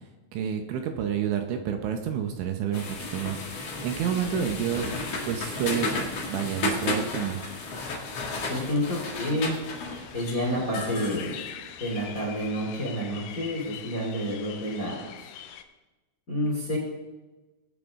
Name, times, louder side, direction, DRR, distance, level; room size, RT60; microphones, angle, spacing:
voice 1, 0.3-3.4 3.8-4.9 5.3-7.5, right 8 dB, 75° right, 5 dB, 3.1 m, -29 dB
sound 1, 2.7-12.3, left 2 dB, 50° left, 2.0 m, -33 dB
sound 2, 6.6-15.6, left 10 dB, 85° left, 3.1 m, -45 dB
voice 2, 8.5-9.5 10.1-11.4 11.8-15.1 16.3-16.8, equal, 25° left, -2 dB, 2.1 m, -29 dB
20.0 x 9.2 x 3.6 m, 1.1 s
omnidirectional pair, 5.7 m